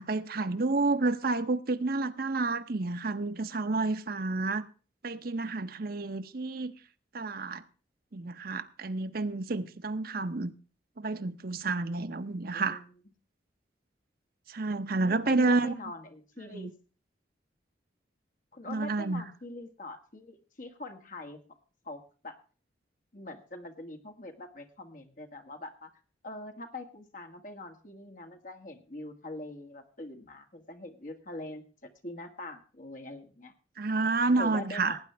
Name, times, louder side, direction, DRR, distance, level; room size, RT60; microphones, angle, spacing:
voice 1, 0.0-4.7 5.0-6.7 7.1-7.6 8.1-10.5 11.0-12.8 14.5-15.7 16.5-16.7 18.7-19.2 33.8-35.0, right 3 dB, 55° right, 0.8 m, -30 dB
voice 2, 12.5-12.9 15.1-16.7 18.5-21.4 21.8-22.4 23.1-25.9 26.2-33.5 34.4-35.0, left 2 dB, 45° left, 1.9 m, -43 dB
18.0 x 9.6 x 3.4 m
head